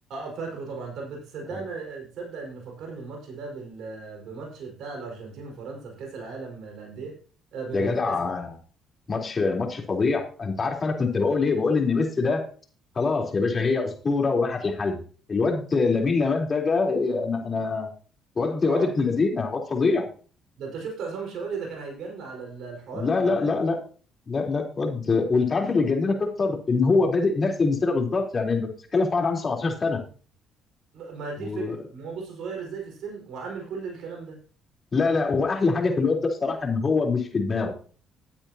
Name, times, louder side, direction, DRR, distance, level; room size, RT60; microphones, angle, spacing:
voice 1, 0.1-7.2 7.5-8.2 18.6-18.9 20.6-23.5 25.6-25.7 30.9-34.4, right 4 dB, 70° right, 0 dB, 4.8 m, -36 dB
voice 2, 7.7-8.5 9.1-12.5 13.0-15.0 15.3-17.9 18.4-20.1 22.9-23.8 24.3-30.0 31.4-31.8 34.9-37.7, left 4 dB, 40° left, 1 dB, 3.7 m, -24 dB
15.5 x 8.9 x 2.9 m, 0.40 s
supercardioid pair, 60°, 0 cm